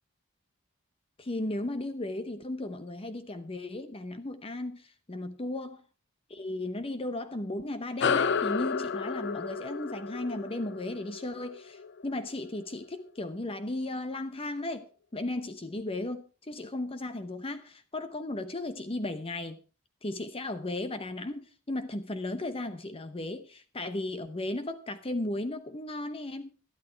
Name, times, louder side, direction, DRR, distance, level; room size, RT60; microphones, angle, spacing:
voice 1, 1.2-5.8 6.3-19.6 20.0-26.5, left 2 dB, 25° left, 0.8 m, -35 dB
sound 1, 8.0-12.8, left 6 dB, 55° left, 0.6 m, -32 dB
13.0 x 12.0 x 4.6 m
head